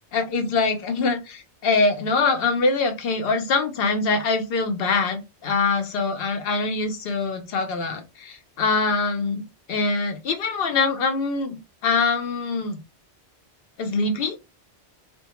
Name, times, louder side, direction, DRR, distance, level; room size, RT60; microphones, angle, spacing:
voice 1, 0.1-11.6 11.8-12.8 13.8-14.4, left 4 dB, 65° left, 0.8 m, -24 dB
2.2 x 2.2 x 2.8 m
omnidirectional pair, 1.2 m